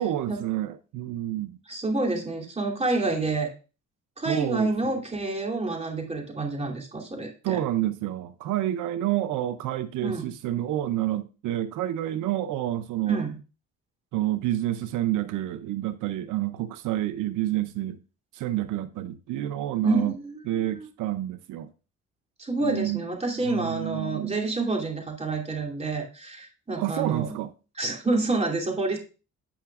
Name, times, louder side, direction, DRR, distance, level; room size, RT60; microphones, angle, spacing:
voice 1, 0.0-1.6 4.3-5.0 7.4-13.3 14.1-18.0 18.3-20.1 20.5-21.7 22.6-23.0 23.4-24.5 26.8-27.5, right 13 dB, 90° right, 0.6 m, -29 dB
voice 2, 1.7-3.5 4.2-7.6 10.0-10.3 13.0-13.4 19.8-20.9 22.4-27.3 27.8-29.0, right 3 dB, 20° right, 2.8 m, -28 dB
15.5 x 5.6 x 2.4 m
cardioid pair, 90°, 30 cm